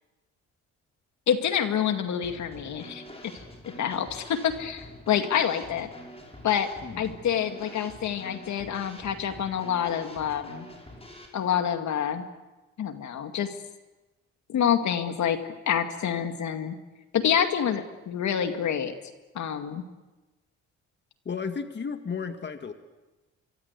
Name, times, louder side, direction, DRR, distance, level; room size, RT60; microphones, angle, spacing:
voice 1, 1.3-3.0 3.8-5.9 6.4-6.7 7.0-10.7 11.3-12.3 12.8-13.5 14.5-16.8 17.1-18.9 19.3-19.8, left 8 dB, 70° left, 7 dB, 2.3 m, -27 dB
Drum kit / Snare drum, 2.2-11.3, left 1 dB, 20° left, 6.3 m, -46 dB
voice 2, 21.3-22.7, left 5 dB, 35° left, 8 dB, 2.0 m, -33 dB
25.0 x 24.5 x 8.3 m, 1.1 s
cardioid pair, 90°, 30 cm